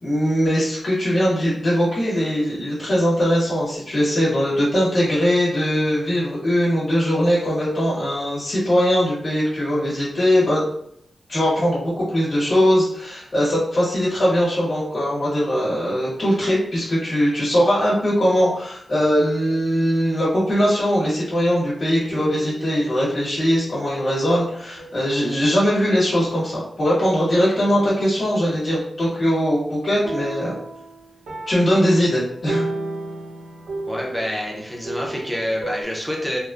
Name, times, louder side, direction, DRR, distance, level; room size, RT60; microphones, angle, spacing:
voice 1, 0.0-10.6 11.3-30.5 31.5-32.6, equal, 40° left, -8 dB, 1.1 m, -20 dB
sound 1, 22.1-23.9 24.8-25.1 26.2-27.0 27.6-28.8 30.1-35.8, right 2 dB, 70° right, 0.7 m, -33 dB
voice 2, 33.9-36.4, equal, ahead, -2 dB, 0.6 m, -27 dB
3.3 x 2.0 x 2.4 m, 0.70 s
wide cardioid pair, 175°, 0 cm